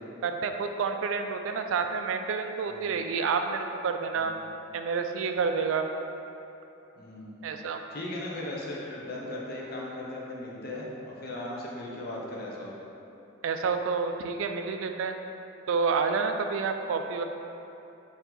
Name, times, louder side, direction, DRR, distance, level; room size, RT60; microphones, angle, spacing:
voice 1, 0.2-4.3 4.7-5.9 7.4-7.8 13.4-15.2 15.7-17.2, right 5 dB, 80° right, 6 dB, 0.3 m, -29 dB
voice 2, 4.1-4.4 7.0-7.4 7.9-12.9, left 1 dB, 50° left, -4 dB, 0.7 m, -38 dB
4.6 x 2.8 x 3.9 m, 2.8 s
head